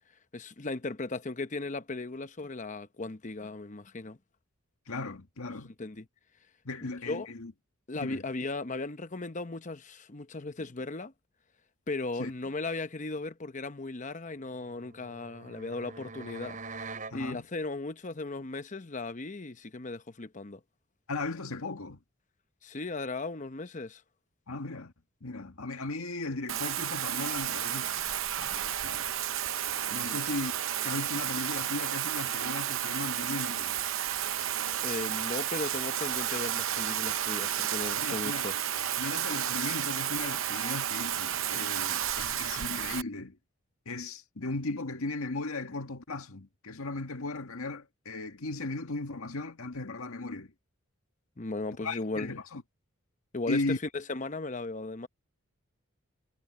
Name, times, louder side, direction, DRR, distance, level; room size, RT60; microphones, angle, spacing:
voice 1, 0.3-4.2 5.5-6.1 6.8-7.3 7.9-11.1 11.9-16.6 16.9-20.6 22.6-24.0 30.0-30.2 34.8-38.6 51.4-52.3 53.3-55.1, left 3 dB, 35° left, 0.8 m, -37 dB
voice 2, 4.9-5.7 6.7-7.5 8.0-8.2 12.2-12.3 17.1-17.5 21.1-22.0 24.5-24.9 25.2-27.9 28.4-29.1 29.9-30.5 30.8-33.8 38.0-38.5 39.0-43.4 43.9-50.5 51.8-52.6 53.5-53.8, left 2 dB, 75° left, 1.8 m, -37 dB
sound 1, 14.6-17.2, right 3 dB, 40° right, 4.6 m, -44 dB
Bathtub (filling or washing), 26.5-43.0, right 11 dB, 65° right, 0.8 m, -32 dB
head